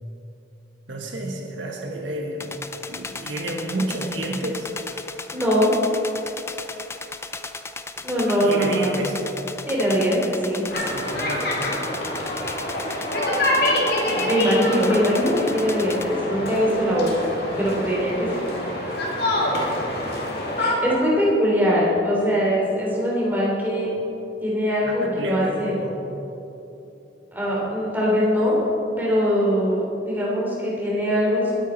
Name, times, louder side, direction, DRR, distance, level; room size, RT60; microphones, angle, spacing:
voice 1, 0.9-2.6 2.9-4.7 8.4-9.2 10.9-11.6 14.0-14.3 24.8-26.0, right 1 dB, 75° right, 1 dB, 1.6 m, -30 dB
sound 1, 2.4-16.0, left 3 dB, 15° left, 0.4 m, -36 dB
voice 2, 5.3-5.7 8.0-8.9 9.7-10.7 14.3-17.3 17.6-18.3 20.0-20.1 20.6-23.9 24.4-25.7 27.3-28.6 29.0-31.5, equal, 10° right, -5 dB, 3.3 m, -22 dB
sound 2, 10.7-20.8, left 1 dB, 55° left, 2.6 m, -26 dB
21.0 x 9.4 x 4.5 m, 3.0 s
head